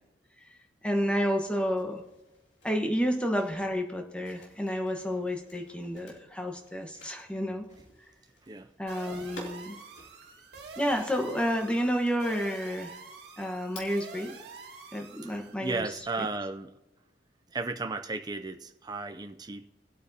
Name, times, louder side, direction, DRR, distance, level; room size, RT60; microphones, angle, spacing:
voice 1, 0.8-2.0 2.6-7.6 8.8-9.8 10.8-13.0 13.4-14.3 14.9-15.9 16.2-16.3, equal, 5° left, 2 dB, 1.3 m, -30 dB
sound 1, 1.8-14.9 15.3-16.3, left 1 dB, 80° left, 3.1 m, -53 dB
sound 2, 8.9-15.5, right 4 dB, 60° right, 2.3 m, -47 dB
voice 2, 15.6-16.7 17.5-19.7, right 3 dB, 20° right, 6 dB, 0.5 m, -34 dB
20.0 x 8.5 x 2.8 m, 0.99 s
head